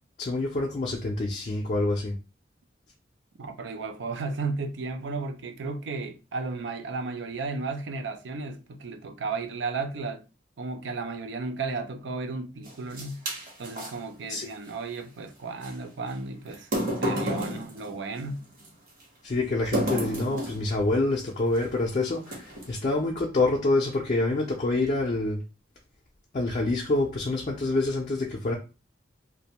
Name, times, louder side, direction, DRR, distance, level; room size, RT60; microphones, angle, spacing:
voice 1, 0.2-2.2 14.3-14.5 19.2-25.4 26.3-28.5, left 2 dB, 40° left, 0.4 m, -26 dB
voice 2, 3.4-10.2 10.6-13.2 13.6-16.7 17.0-18.4, right 3 dB, 80° right, 0.4 m, -34 dB
sound 1, 12.7-13.9 15.6-15.7 16.5-18.7 19.7-20.7 21.5-21.7 22.2-22.8, equal, 45° right, 1.0 m, -30 dB
2.5 x 2.1 x 2.8 m
head